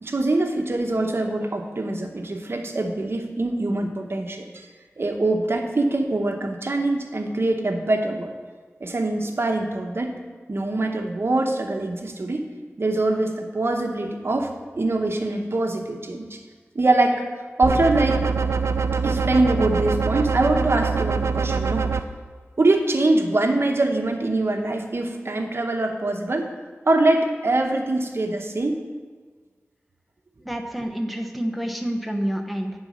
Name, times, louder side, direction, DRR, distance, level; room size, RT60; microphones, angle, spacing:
voice 1, 0.0-4.7 5.0-8.3 8.8-10.2 10.5-12.4 12.8-16.4 16.7-17.2 17.6-18.2 19.0-22.0 22.6-26.5 26.8-28.8, right 2 dB, 60° right, 3 dB, 0.9 m, -23 dB
sound 1, 17.6-22.0, right 5 dB, 75° right, 0.4 m, -24 dB
voice 2, 30.4-32.7, equal, ahead, 4 dB, 0.8 m, -28 dB
9.9 x 4.0 x 6.2 m, 1.5 s
wide cardioid pair, 75°, 5 cm